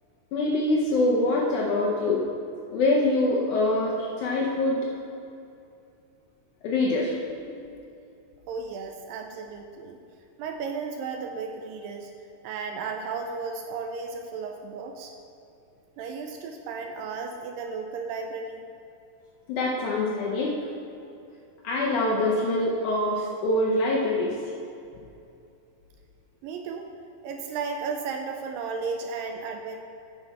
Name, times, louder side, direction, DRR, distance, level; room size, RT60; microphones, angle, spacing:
voice 1, 0.3-2.2 2.7-4.8 6.6-7.8 19.5-20.7 21.6-24.3, left 2 dB, 75° left, -3 dB, 1.8 m, -25 dB
voice 2, 8.5-10.0 10.4-12.1 12.4-15.1 16.0-18.7 26.4-26.9 27.2-29.8, right 5 dB, 80° right, 4 dB, 2.1 m, -34 dB
9.0 x 7.0 x 4.2 m, 2.7 s
omnidirectional pair, 4.3 m